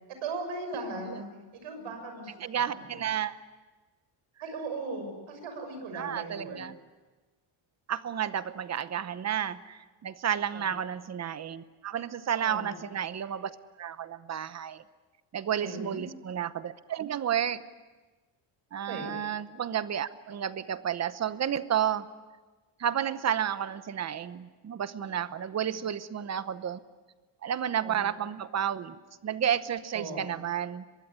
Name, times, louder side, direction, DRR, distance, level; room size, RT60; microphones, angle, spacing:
voice 1, 0.2-1.3 1.6-2.9 4.4-6.6 10.5-10.7 12.4-12.7 15.6-16.1 18.8-19.2 27.8-28.0 29.9-30.2, right 3 dB, 80° right, 7 dB, 6.5 m, -38 dB
voice 2, 2.4-3.4 5.9-6.8 7.9-14.8 15.3-17.6 18.7-22.1 22.8-26.8 27.4-30.8, right 9 dB, 35° right, 14 dB, 0.9 m, -31 dB
23.5 x 22.0 x 9.8 m, 1.3 s
cardioid pair, 175°, 48 cm